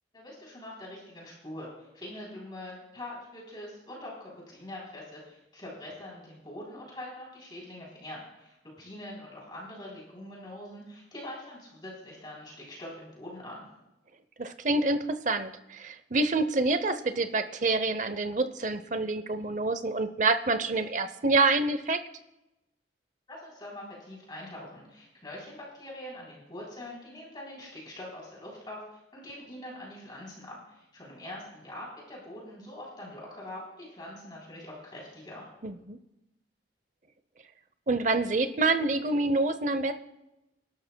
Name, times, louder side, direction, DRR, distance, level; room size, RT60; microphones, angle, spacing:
voice 1, 0.1-13.6 23.3-35.4, left 1 dB, 25° left, -5 dB, 3.5 m, -43 dB
voice 2, 14.4-22.0 35.6-36.0 37.9-39.9, right 3 dB, 45° right, 11 dB, 0.7 m, -27 dB
25.0 x 12.0 x 2.3 m, 0.94 s
head